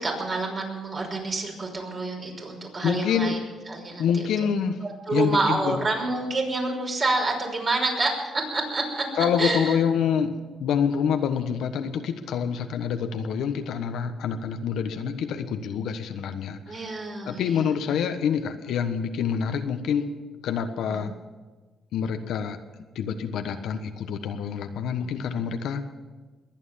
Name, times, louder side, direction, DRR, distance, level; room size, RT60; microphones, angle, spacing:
voice 1, 0.0-3.4 3.7-4.1 4.4-4.5 4.8-9.1 9.4-9.8 16.7-17.7 20.9-21.0 25.0-25.1, right 3 dB, 40° right, 0 dB, 5.8 m, -28 dB
voice 2, 2.8-3.4 4.0-4.8 5.1-5.8 9.2-10.3 10.6-16.9 17.2-20.1 20.4-21.1 21.9-22.6 22.9-25.8, left 7 dB, 80° left, 7 dB, 1.3 m, -26 dB
21.5 x 9.1 x 7.3 m, 1.3 s
cardioid pair, 90°, 0 cm